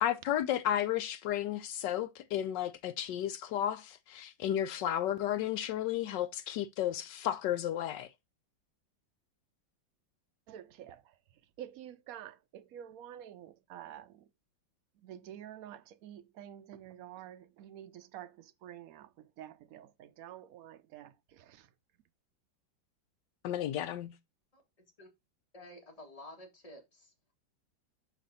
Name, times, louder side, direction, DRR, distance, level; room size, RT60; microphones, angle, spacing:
voice 1, 0.0-8.1 23.4-24.1, left 11 dB, 75° left, 1.1 m, -33 dB
voice 2, 10.5-11.1 11.6-14.3 15.0-21.7, right 11 dB, 75° right, 0.8 m, -49 dB
voice 3, 25.5-27.1, left 1 dB, 20° left, 1.7 m, -51 dB
5.8 x 5.0 x 4.0 m
omnidirectional pair, 2.1 m